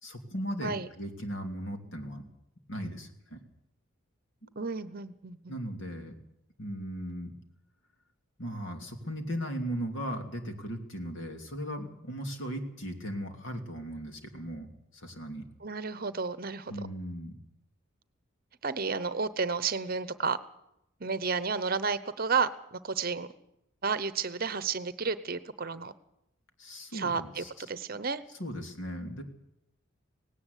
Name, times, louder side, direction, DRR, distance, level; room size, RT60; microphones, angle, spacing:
voice 1, 0.0-2.2 2.7-3.4 5.5-6.2 6.6-7.4 8.4-15.4 16.7-17.3 26.6-27.5 28.4-29.2, equal, 65° left, 4 dB, 3.0 m, -37 dB
voice 2, 4.6-5.5 15.6-16.8 18.6-20.4 21.0-23.3 23.8-25.9 26.9-28.2, right 5 dB, 45° right, 14 dB, 0.8 m, -32 dB
18.0 x 17.5 x 8.2 m, 0.80 s
head